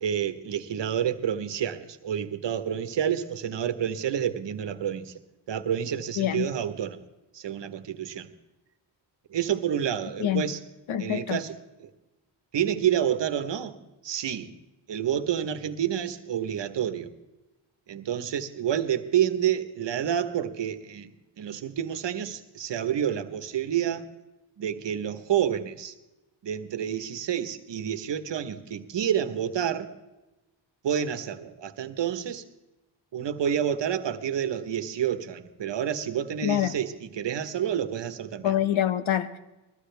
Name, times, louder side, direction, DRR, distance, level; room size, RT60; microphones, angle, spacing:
voice 1, 0.0-5.2 5.5-7.0 7.3-8.3 9.3-10.6 11.0-11.9 12.5-13.8 14.0-14.5 14.9-17.1 17.9-24.1 24.6-25.9 26.4-29.9 30.8-32.4 33.1-38.5, right 9 dB, 60° right, 1.3 m, -29 dB
voice 2, 6.2-6.5 10.2-10.4 10.9-11.4 36.4-36.7 38.4-39.4, left 11 dB, 80° left, 1.2 m, -25 dB
21.5 x 15.0 x 3.4 m
cardioid pair, 105°, 47 cm